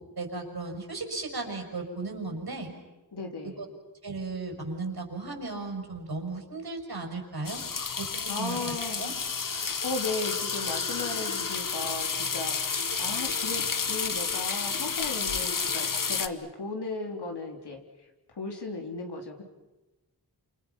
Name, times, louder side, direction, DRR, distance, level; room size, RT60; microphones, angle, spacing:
voice 1, 0.0-2.7 3.6-3.7 4.0-7.6 8.0-8.6 9.0-9.1, right 3 dB, 70° right, 2 dB, 5.9 m, -35 dB
voice 2, 3.1-3.7 8.3-9.1 9.5-17.8 18.3-19.4, left 3 dB, 85° left, 2 dB, 3.8 m, -36 dB
sound 1, 7.4-16.3, left 5 dB, 55° left, 1.2 m, -31 dB
29.5 x 27.5 x 5.8 m, 1.1 s
wide cardioid pair, 75°, 39 cm